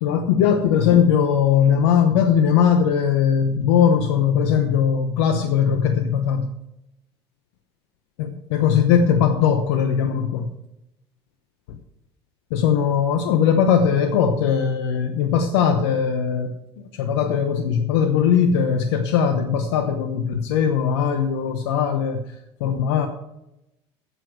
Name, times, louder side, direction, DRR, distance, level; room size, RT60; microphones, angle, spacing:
voice 1, 0.0-6.5 8.2-10.5 12.5-22.2 22.6-23.1, left 7 dB, 80° left, 7 dB, 0.9 m, -19 dB
12.5 x 8.2 x 4.7 m, 0.88 s
hypercardioid pair, 70°, 14 cm